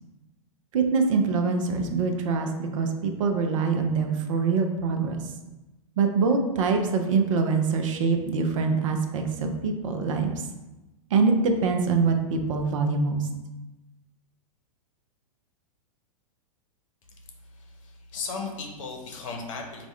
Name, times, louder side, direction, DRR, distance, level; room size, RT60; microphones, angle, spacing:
voice 1, 0.7-5.2 6.0-10.3 11.1-13.2, right 4 dB, 60° right, 4 dB, 0.6 m, -24 dB
voice 2, 17.6-19.9, left 4 dB, 60° left, 2 dB, 0.8 m, -36 dB
4.6 x 2.6 x 3.2 m, 1.0 s
hypercardioid pair, 105°, 19 cm